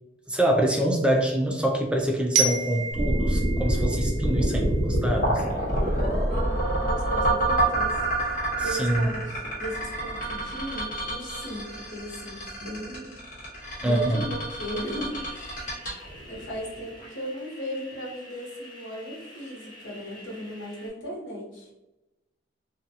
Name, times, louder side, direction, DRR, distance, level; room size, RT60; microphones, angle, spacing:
voice 1, 0.3-5.4 8.6-9.1 13.8-14.3, right 1 dB, 5° right, 0 dB, 0.3 m, -25 dB
Glockenspiel, 2.4-5.2, right 5 dB, 85° right, 0.4 m, -30 dB
sound 1, 2.9-17.0, right 1 dB, 50° left, 1.1 m, -27 dB
voice 2, 4.2-4.7 6.3-8.4 8.6-13.2 13.8-15.6 16.3-21.7, equal, 85° left, -4 dB, 1.0 m, -37 dB
sound 2, 15.1-20.9, left 1 dB, 25° left, 0.9 m, -48 dB
2.5 x 2.3 x 2.7 m, 0.99 s
head